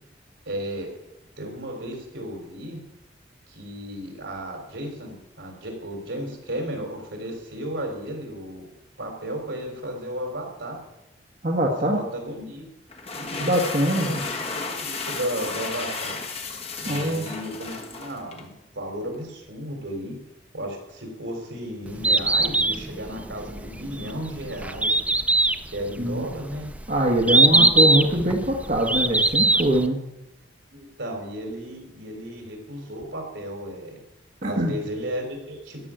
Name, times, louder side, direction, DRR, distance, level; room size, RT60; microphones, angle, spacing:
voice 1, 0.5-0.9 1.4-2.8 3.5-8.7 9.0-10.8 11.8-12.7 13.1-13.5 14.0-16.2 16.8-20.1 20.5-24.9 25.7-26.7 27.2-27.7 30.7-34.0 34.4-35.9, equal, 75° right, 2 dB, 3.7 m, -34 dB
voice 2, 11.4-12.0 13.4-14.2 16.9-17.3 26.0-26.3 26.9-30.1 34.4-34.8, right 1 dB, 45° right, -1 dB, 1.4 m, -23 dB
sound 1, 12.9-18.5, left 4 dB, 35° left, 1.3 m, -33 dB
Bird, 21.9-29.9, right 2 dB, 10° right, 0.4 m, -21 dB
13.5 x 6.2 x 8.8 m, 0.92 s
head